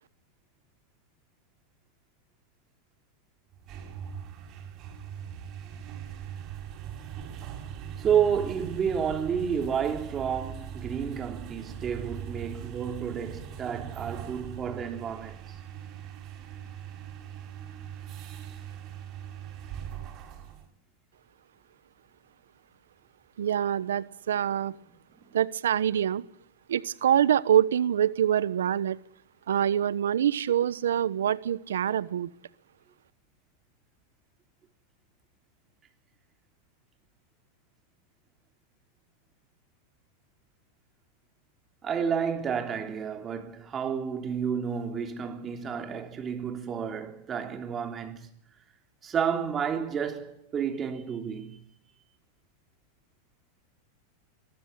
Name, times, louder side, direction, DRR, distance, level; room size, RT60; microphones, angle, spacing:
sound 1, 3.5-20.7, right 9 dB, 45° right, 7.2 m, -41 dB
voice 1, 8.0-15.4 41.8-48.3 49.0-51.6, right 7 dB, 30° right, 3.3 m, -30 dB
voice 2, 23.4-24.7 25.3-26.2 26.7-29.0 29.5-32.3, right 10 dB, 85° right, 1.1 m, -25 dB
24.5 x 14.5 x 9.0 m
hypercardioid pair, 110°, 0 cm